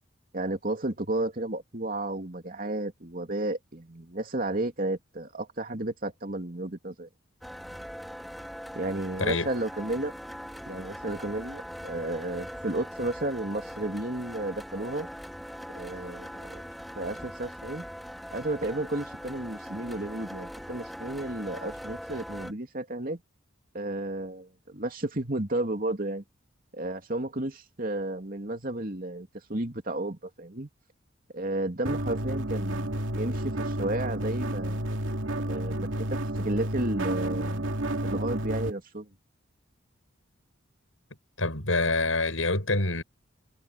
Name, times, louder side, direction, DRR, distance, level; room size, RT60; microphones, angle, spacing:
voice 1, 0.3-7.1 8.7-10.1 10.7-15.1 15.7-16.6 17.0-17.8 18.3-23.2 23.7-26.2 26.7-30.7 31.3-32.9 33.1-34.9 35.4-37.7 38.0-39.1, right 1 dB, 45° right, 2.8 m, -32 dB
sound 1, 7.4-22.5, equal, ahead, 3.9 m, -41 dB
voice 2, 9.2-9.5 41.4-43.0, left 2 dB, 85° left, 7.8 m, -26 dB
sound 2, 31.8-38.7, right 1 dB, 75° right, 2.8 m, -31 dB
head